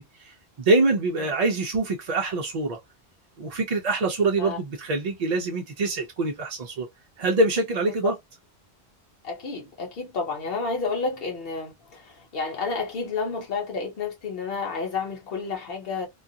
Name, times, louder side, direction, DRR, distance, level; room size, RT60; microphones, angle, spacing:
voice 1, 0.0-2.8 3.4-6.9 7.2-8.1, right 2 dB, 50° right, 0.5 m, -25 dB
voice 2, 9.2-16.1, left 4 dB, 60° left, 1.1 m, -30 dB
2.4 x 2.3 x 2.6 m
omnidirectional pair, 1.1 m